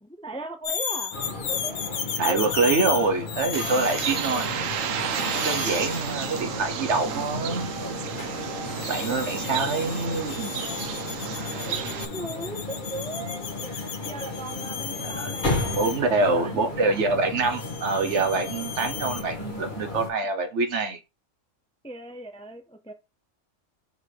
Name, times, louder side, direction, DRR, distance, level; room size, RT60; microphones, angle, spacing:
voice 1, 0.0-1.8 11.5-13.5 14.0-17.2 21.8-22.9, right 2 dB, 5° left, 0.5 m, -38 dB
sound 1, 0.6-6.5 8.7-16.0 17.5-19.2, left 7 dB, 75° left, 1.2 m, -35 dB
sound 2, 1.1-20.1, left 2 dB, 40° left, 1.9 m, -34 dB
voice 2, 2.2-4.6 5.3-7.7 8.8-10.5 15.0-21.0, right 3 dB, 65° right, 1.4 m, -25 dB
Bird, 3.5-12.0, right 8 dB, 90° right, 1.1 m, -32 dB
5.3 x 4.0 x 4.9 m
omnidirectional pair, 1.3 m